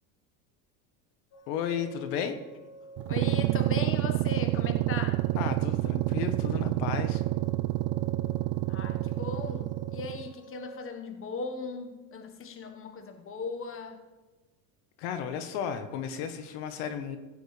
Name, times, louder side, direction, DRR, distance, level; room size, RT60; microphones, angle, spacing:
sound 1, 1.3-10.9, right 2 dB, 45° left, 1.5 m, -48 dB
voice 1, 1.5-2.4 5.4-7.2 15.0-17.2, left 8 dB, 70° left, 9 dB, 1.2 m, -33 dB
sound 2, 3.0-10.3, right 18 dB, 55° right, 0.5 m, -28 dB
voice 2, 3.1-5.2 8.7-14.0, left 4 dB, 30° left, 6 dB, 1.3 m, -38 dB
16.5 x 9.3 x 3.3 m, 1.2 s
supercardioid pair, 105°, 45 cm